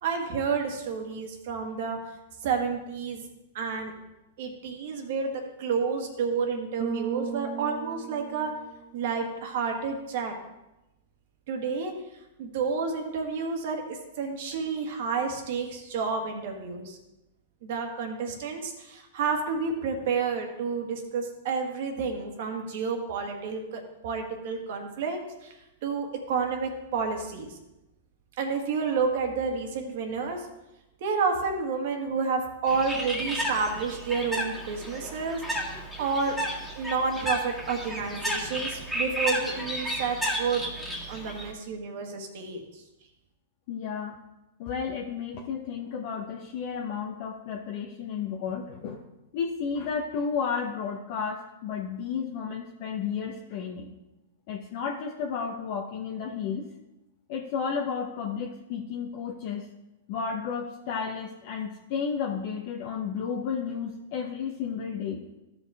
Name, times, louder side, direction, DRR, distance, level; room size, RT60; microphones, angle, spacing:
voice 1, 0.0-2.0 2.4-3.3 3.5-3.9 4.4-8.5 8.9-10.3 11.5-11.9 12.4-17.0 17.6-25.5 25.8-27.6 28.4-30.5 31.0-35.4 36.0-36.4 36.8-40.6 41.1-42.8, right 5 dB, 60° right, 3 dB, 1.7 m, -30 dB
Bass guitar, 6.8-9.1, right 8 dB, 45° right, 0.6 m, -36 dB
Bird, 32.7-41.5, equal, ahead, 1.9 m, -33 dB
voice 2, 43.7-44.2 44.6-49.0 49.3-53.9 54.5-56.7 57.3-59.7 60.1-65.3, left 6 dB, 50° left, 0 dB, 1.0 m, -32 dB
13.5 x 5.3 x 3.6 m, 0.96 s
hypercardioid pair, 130°, 0 cm